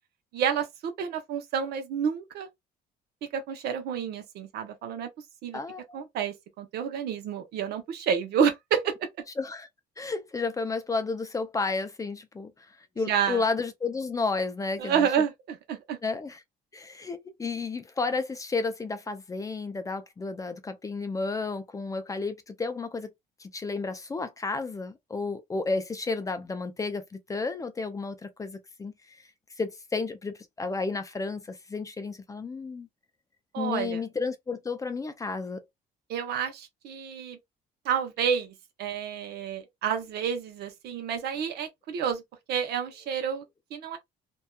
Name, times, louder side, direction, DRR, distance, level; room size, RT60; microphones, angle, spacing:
voice 1, 0.3-2.5 3.3-5.1 5.4-5.6 5.9-9.1 13.0-13.4 14.8-16.0 33.5-34.0 36.1-37.4 37.8-42.2 42.5-43.4 43.7-44.0, right 7 dB, 75° right, 0.8 m, -29 dB
voice 2, 5.5-6.0 9.4-9.7 10.0-12.5 13.0-15.1 16.0-16.4 16.7-23.1 23.4-28.9 29.6-32.9 33.6-35.6, left 4 dB, 20° left, 0.4 m, -32 dB
2.7 x 2.2 x 2.2 m
cardioid pair, 110°, 17 cm